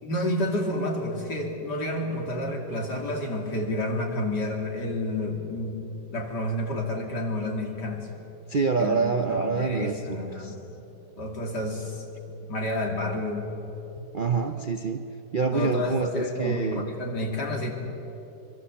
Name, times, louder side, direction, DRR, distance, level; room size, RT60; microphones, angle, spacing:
voice 1, 0.0-5.8 6.1-8.1 8.8-10.7 11.2-12.1 12.5-13.6 14.0-14.1 15.5-17.7, left 1 dB, 65° left, 1 dB, 3.3 m, -30 dB
voice 2, 8.5-10.5 14.1-16.9, right 5 dB, 60° right, 7 dB, 0.5 m, -27 dB
24.5 x 22.5 x 7.1 m, 2.9 s
omnidirectional pair, 2.0 m